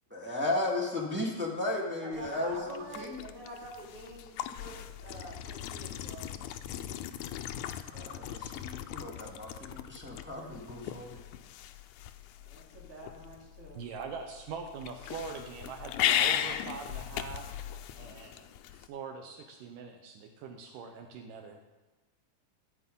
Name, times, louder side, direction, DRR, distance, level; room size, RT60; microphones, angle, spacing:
voice 1, 0.1-3.2 7.6-11.2, left 2 dB, 5° right, -3 dB, 1.1 m, -35 dB
voice 2, 2.0-6.5 7.9-8.1 12.4-13.8, right 2 dB, 40° right, -5 dB, 3.8 m, -47 dB
sound 1, 2.1-18.9, left 11 dB, 85° left, 1.7 m, -37 dB
voice 3, 13.8-17.6 17.9-18.5 18.9-21.6, right 5 dB, 80° right, 4 dB, 2.4 m, -43 dB
14.5 x 8.7 x 5.5 m, 1.2 s
omnidirectional pair, 3.9 m